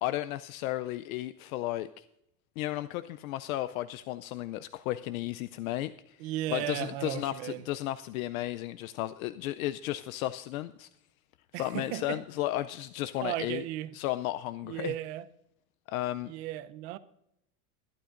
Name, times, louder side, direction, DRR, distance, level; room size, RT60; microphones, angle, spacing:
voice 1, 0.0-2.0 2.6-6.2 6.5-10.9 11.5-13.6 13.9-14.9 15.9-16.3, left 15 dB, 70° left, 0.6 m, -34 dB
voice 2, 6.2-7.7 11.5-12.2 13.2-13.9 14.6-15.3 16.2-17.0, right 14 dB, 45° right, 0.7 m, -35 dB
21.0 x 11.5 x 2.5 m
supercardioid pair, 175°, 44 cm